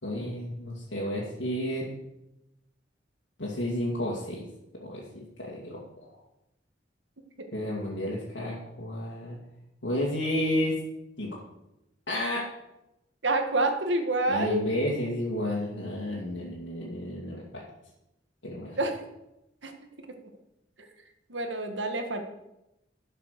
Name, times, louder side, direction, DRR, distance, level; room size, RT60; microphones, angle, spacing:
voice 1, 0.0-1.9 3.4-4.4 4.8-5.8 7.5-9.4 9.8-10.7 11.2-11.4 12.1-12.4 14.3-17.6 18.4-18.8, left 1 dB, 80° left, -5 dB, 2.4 m, -31 dB
voice 2, 13.2-14.6 18.8-19.0 19.6-19.7 20.8-20.9 21.3-22.2, right 2 dB, 80° right, 6 dB, 1.8 m, -27 dB
12.0 x 6.8 x 6.7 m, 0.89 s
head